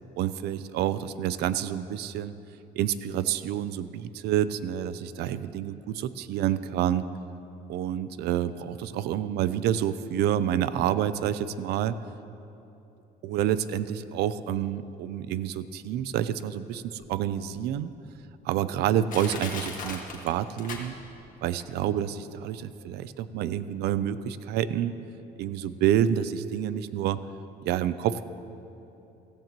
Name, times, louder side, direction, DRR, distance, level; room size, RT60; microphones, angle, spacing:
voice 1, 0.2-2.3 2.7-7.1 7.7-12.0 13.2-17.9 18.4-20.9 21.4-24.9 25.4-27.2 27.7-28.2, right 10 dB, 75° right, 14 dB, 0.5 m, -28 dB
Crushing, 17.0-17.1 17.7-17.8 18.5-18.6 19.1-21.3 21.6-21.7, left 4 dB, 50° left, 1.7 m, -37 dB
15.5 x 15.0 x 3.0 m, 2.9 s
cardioid pair, 110°, 17 cm